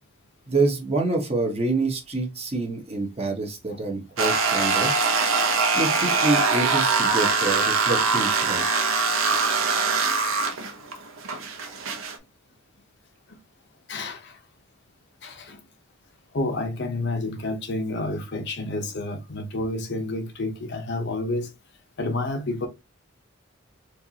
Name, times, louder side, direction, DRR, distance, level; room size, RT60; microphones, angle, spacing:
voice 1, 0.5-4.9 5.7-8.6, right 3 dB, 30° right, 1.1 m, -27 dB
sound 1, 4.2-12.2, right 4 dB, 90° right, 0.9 m, -23 dB
voice 2, 13.9-14.3 15.2-15.6 16.3-21.5 22.0-22.7, left 2 dB, 60° left, 0.8 m, -29 dB
4.5 x 2.6 x 2.8 m
head